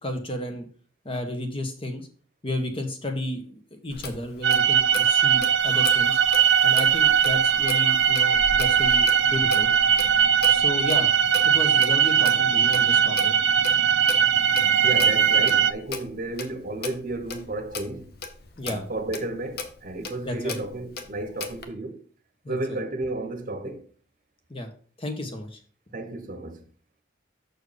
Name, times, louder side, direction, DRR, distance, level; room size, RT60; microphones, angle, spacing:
voice 1, 0.0-0.7 1.0-2.1 2.4-6.2 6.6-9.7 10.5-11.1 11.4-13.3 18.6-18.8 20.2-20.6 22.4-22.8 24.5-24.7 25.0-25.6, left 1 dB, 30° left, 1.1 m, -32 dB
Clock, 3.9-21.7, left 4 dB, 55° left, 0.9 m, -38 dB
sound 1, 4.4-15.7, right 8 dB, 70° right, 0.5 m, -20 dB
voice 2, 14.8-18.1 18.6-22.0 22.5-23.8 25.9-26.6, right 2 dB, 45° right, 0.9 m, -32 dB
6.5 x 4.6 x 5.0 m
head